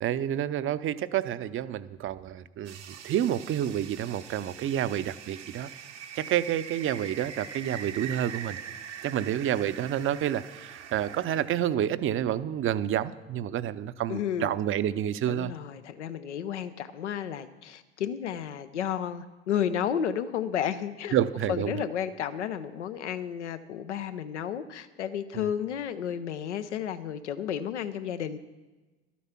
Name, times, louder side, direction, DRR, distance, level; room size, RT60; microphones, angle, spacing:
voice 1, 0.0-5.7 6.2-8.6 9.0-15.5 21.1-21.7 25.3-25.5, right 11 dB, 40° right, 14 dB, 0.6 m, -29 dB
sound 1, 2.6-11.6, right 7 dB, 85° right, 1.2 m, -43 dB
voice 2, 14.1-14.6 15.3-21.2 21.5-28.4, left 9 dB, 90° left, 12 dB, 0.7 m, -32 dB
12.5 x 8.4 x 5.8 m, 1.2 s
hypercardioid pair, 75°, 34 cm